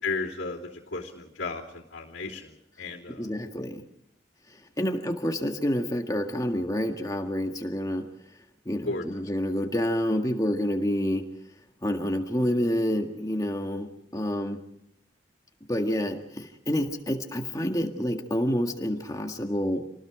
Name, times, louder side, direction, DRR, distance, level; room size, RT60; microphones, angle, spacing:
voice 1, 0.0-3.3 8.8-9.0, left 3 dB, 75° left, -6 dB, 3.1 m, -34 dB
voice 2, 3.1-3.8 4.8-8.1 8.7-11.3 11.8-14.6 15.7-19.8, equal, 20° left, 4 dB, 1.7 m, -28 dB
27.5 x 19.5 x 5.0 m, 0.78 s
head